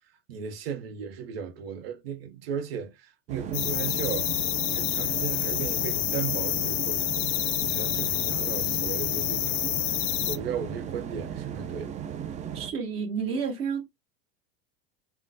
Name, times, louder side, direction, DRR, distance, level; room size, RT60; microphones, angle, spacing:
voice 1, 0.3-4.3 4.7-7.1 7.6-9.6 9.9-10.0 10.3-12.0, right 7 dB, 75° right, 0.8 m, -36 dB
sound 1, 3.3-12.7, right 8 dB, 25° right, 0.4 m, -36 dB
sound 2, 3.5-10.4, left 16 dB, 50° left, 0.5 m, -28 dB
voice 2, 12.5-13.8, right 6 dB, 45° right, 1.5 m, -30 dB
3.7 x 2.2 x 2.6 m
hypercardioid pair, 105°, 30 cm